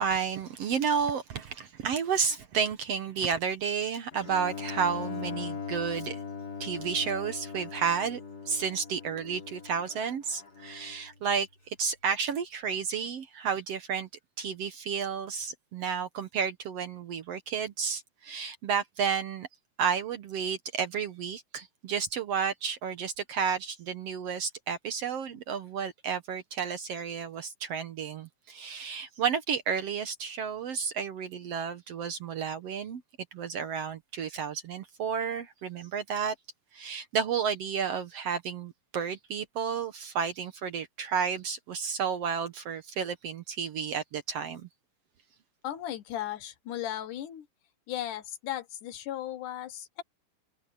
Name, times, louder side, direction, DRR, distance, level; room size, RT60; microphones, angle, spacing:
voice 1, 0.0-6.2 6.6-8.2 8.5-14.1 14.4-19.5 19.8-33.0 33.3-36.4 36.7-44.7, right 6 dB, 65° right, 1.8 m, -31 dB
Bowed string instrument, 4.1-11.1, left 6 dB, 30° left, 3.7 m, -40 dB
voice 2, 45.6-47.5 47.9-50.0, left 12 dB, 75° left, 2.7 m, -36 dB
omnidirectional pair, 3.7 m